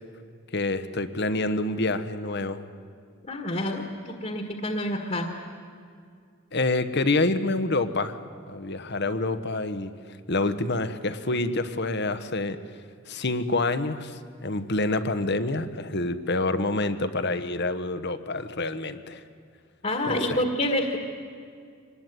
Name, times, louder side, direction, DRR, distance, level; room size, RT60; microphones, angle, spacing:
voice 1, 0.5-2.6 6.5-8.2 8.5-9.9 10.3-12.6 13.1-19.2 20.1-20.4, left 2 dB, 50° left, 11 dB, 1.2 m, -27 dB
voice 2, 3.3-5.3 19.8-21.0, left 1 dB, 35° left, 4 dB, 1.7 m, -28 dB
25.0 x 20.0 x 9.3 m, 2.2 s
head